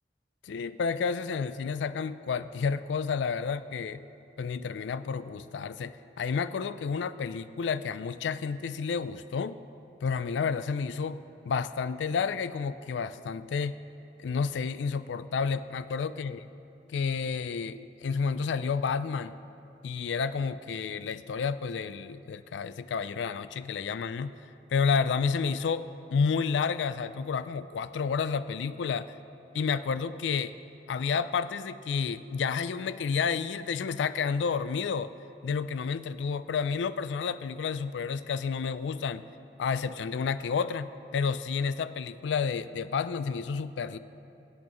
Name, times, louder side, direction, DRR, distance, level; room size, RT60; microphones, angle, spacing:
voice 1, 0.4-4.0 4.4-9.6 10.0-13.8 14.2-16.4 16.9-19.3 19.8-24.4 24.7-29.2 29.5-30.5 30.9-35.1 35.4-39.2 39.6-44.0, left 5 dB, 85° left, 13 dB, 0.4 m, -30 dB
23.5 x 8.4 x 3.0 m, 2.9 s
head